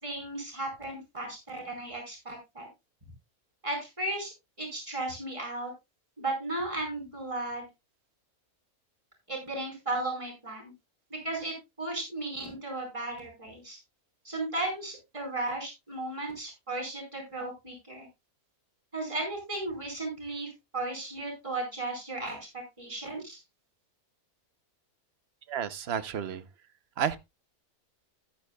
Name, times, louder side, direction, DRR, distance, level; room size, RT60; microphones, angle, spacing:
voice 1, 0.0-2.7 3.6-5.7 6.2-7.7 9.3-10.7 11.1-13.8 14.2-18.1 18.9-23.4, right 2 dB, 20° right, 4.6 m, -35 dB
voice 2, 25.5-26.4 27.0-27.2, right 8 dB, 50° right, 0.9 m, -31 dB
13.0 x 11.0 x 2.3 m
omnidirectional pair, 1.6 m